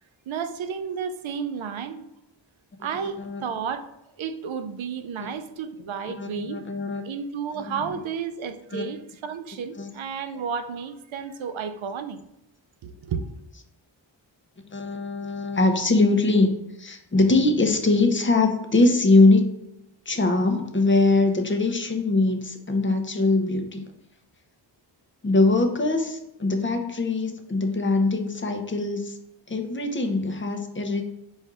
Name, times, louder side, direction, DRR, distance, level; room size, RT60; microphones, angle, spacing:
voice 1, 0.3-2.0 2.8-3.8 4.2-6.6 7.0-12.2 12.8-13.3, right 6 dB, 80° right, 0.6 m, -32 dB
voice 2, 6.2-7.0 7.6-7.8 8.7-8.8 9.8-9.9 14.7-16.5 16.8-19.5 20.1-23.8 25.2-29.2 29.5-31.0, left 2 dB, 25° left, 0.7 m, -22 dB
4.2 x 2.5 x 4.6 m
wide cardioid pair, 65°, 47 cm